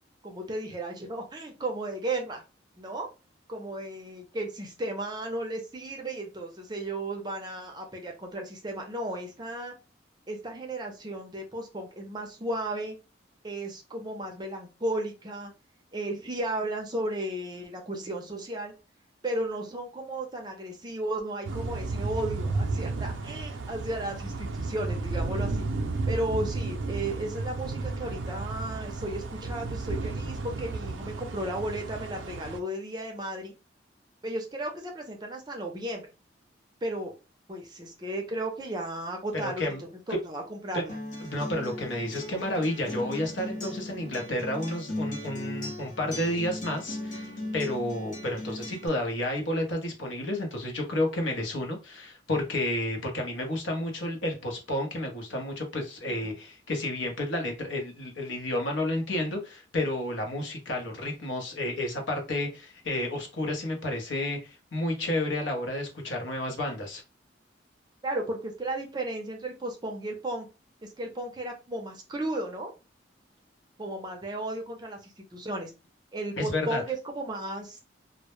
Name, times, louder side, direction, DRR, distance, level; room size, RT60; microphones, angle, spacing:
voice 1, 0.2-2.4 2.8-3.1 3.5-9.7 10.3-13.0 13.4-15.5 15.9-18.7 19.2-25.7 26.1-33.5 34.2-36.1 36.8-37.1 37.5-39.9 40.2-41.0 56.1-56.3 68.0-70.5 70.8-72.7 73.8-75.7 76.1-77.8, right 1 dB, 20° right, 0.5 m, -34 dB
sound 1, 21.4-32.6, right 3 dB, 90° right, 0.4 m, -33 dB
voice 2, 39.4-39.8 40.7-40.8 41.2-67.0 76.4-76.8, left 1 dB, 80° left, 0.7 m, -31 dB
Acoustic guitar, 40.9-48.9, left 1 dB, 40° left, 0.6 m, -37 dB
2.0 x 2.0 x 2.9 m
head